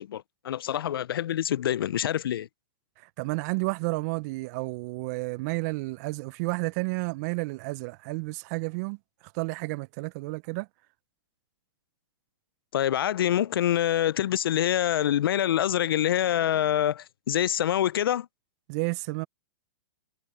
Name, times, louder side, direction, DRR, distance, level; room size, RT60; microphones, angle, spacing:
voice 1, 0.0-2.5 12.7-18.3, left 11 dB, 75° left, 0.5 m, -26 dB
voice 2, 3.2-9.0 9.3-10.7 18.7-19.3, right 27 dB, 45° right, 0.7 m, -31 dB
hypercardioid pair, 125°, 12 cm